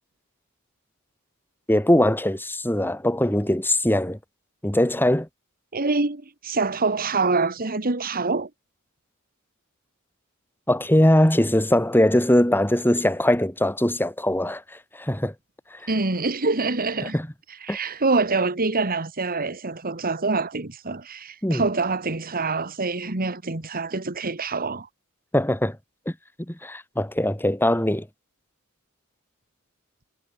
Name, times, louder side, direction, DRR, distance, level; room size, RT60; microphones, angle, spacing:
voice 1, 1.7-4.2 4.6-5.3 10.7-14.6 15.0-15.3 17.1-17.3 17.7-17.8 21.4-21.6 25.3-25.8 26.5-28.1, left 1 dB, 10° left, 4.1 m, -21 dB
voice 2, 5.7-8.5 15.9-17.2 17.6-24.9, right 3 dB, 40° right, 1.9 m, -25 dB
head